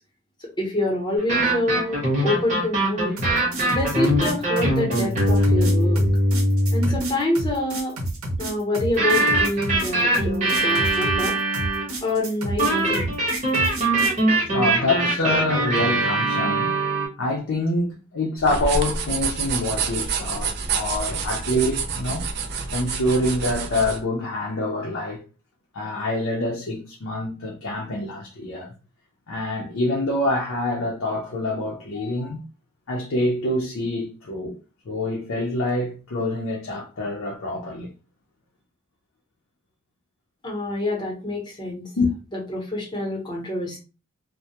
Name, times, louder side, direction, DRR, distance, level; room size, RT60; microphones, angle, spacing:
voice 1, 0.4-3.2 3.7-6.0 6.7-7.9 8.4-11.3 12.0-13.1 40.4-41.9 42.3-43.8, left 1 dB, 20° left, 0.8 m, -26 dB
sound 1, 1.2-7.0 9.0-11.9 12.6-17.1, right 1 dB, 35° right, 0.8 m, -22 dB
sound 2, 3.2-14.2, right 1 dB, 85° right, 0.8 m, -30 dB
voice 2, 14.4-16.7 17.2-22.3 22.7-25.3 25.7-28.7 29.3-32.4 32.9-34.6 34.9-37.9 42.0-42.1, left 1 dB, 75° left, 0.5 m, -26 dB
sound 3, 18.4-24.0, right 5 dB, 50° right, 0.3 m, -28 dB
2.2 x 2.1 x 2.7 m
head